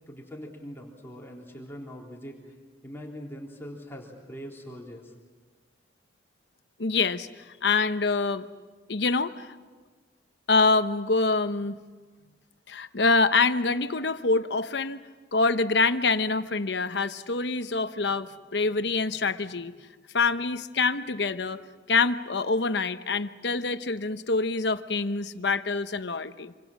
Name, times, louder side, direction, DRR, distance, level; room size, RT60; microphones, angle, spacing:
voice 1, 0.1-2.5 2.8-5.1, equal, 15° left, -2 dB, 3.7 m, -42 dB
voice 2, 6.8-8.5 8.9-9.5 10.5-11.8 12.7-15.0 15.3-19.7 20.1-21.6 21.9-26.5, left 4 dB, 70° left, 10 dB, 1.0 m, -25 dB
27.0 x 25.0 x 7.4 m, 1.4 s
head